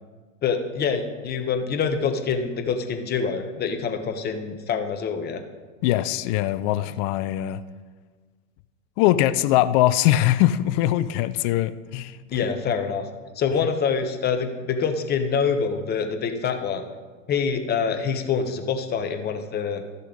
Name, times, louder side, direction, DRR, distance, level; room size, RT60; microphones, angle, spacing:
voice 1, 0.4-5.4 12.3-13.1 13.4-16.8 17.3-19.8, left 6 dB, 25° left, 6 dB, 1.1 m, -25 dB
voice 2, 5.8-7.6 9.0-12.4, left 14 dB, 40° left, 13 dB, 0.5 m, -22 dB
12.5 x 6.7 x 5.1 m, 1.4 s
hypercardioid pair, 115°, 40 cm